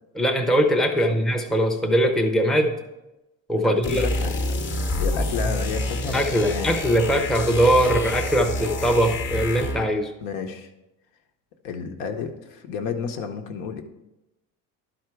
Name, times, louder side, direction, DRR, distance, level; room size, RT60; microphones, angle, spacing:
voice 1, 0.1-2.7 3.5-4.1 6.1-10.1, equal, ahead, 2 dB, 0.5 m, -21 dB
voice 2, 3.6-6.8 10.2-10.7 11.6-13.8, left 6 dB, 85° left, 5 dB, 1.0 m, -31 dB
sound 1, 3.8-10.0, left 1 dB, 35° left, 0.9 m, -28 dB
11.5 x 4.4 x 4.6 m, 0.96 s
cardioid pair, 155°, 34 cm